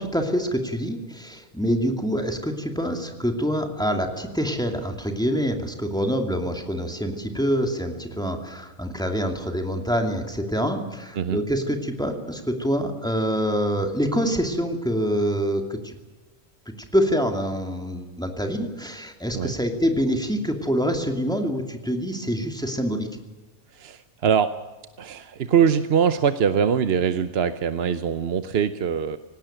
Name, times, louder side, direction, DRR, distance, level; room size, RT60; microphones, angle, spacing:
voice 1, 0.0-15.9 16.9-23.1, equal, 5° left, 4 dB, 2.5 m, -26 dB
voice 2, 23.7-24.6 25.0-29.2, right 7 dB, 50° right, 11 dB, 0.9 m, -22 dB
18.5 x 17.5 x 9.1 m, 1.2 s
omnidirectional pair, 1.5 m